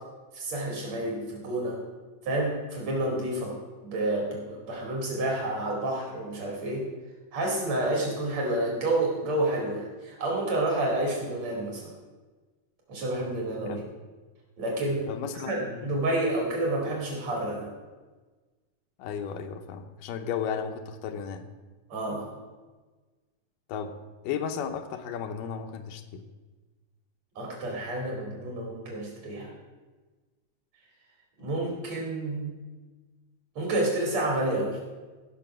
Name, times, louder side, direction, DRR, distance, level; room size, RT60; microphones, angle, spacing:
voice 1, 0.3-1.8 2.2-3.6 3.8-6.8 7.3-11.9 12.9-13.8 14.6-15.1 15.3-17.7 21.9-22.3 27.4-29.5 31.4-32.5 33.6-34.8, right 1 dB, 55° right, -2 dB, 3.5 m, -29 dB
voice 2, 15.1-16.0 19.0-21.5 23.7-26.3, left 7 dB, 85° left, 5 dB, 2.5 m, -34 dB
15.0 x 6.0 x 6.0 m, 1.3 s
omnidirectional pair, 3.7 m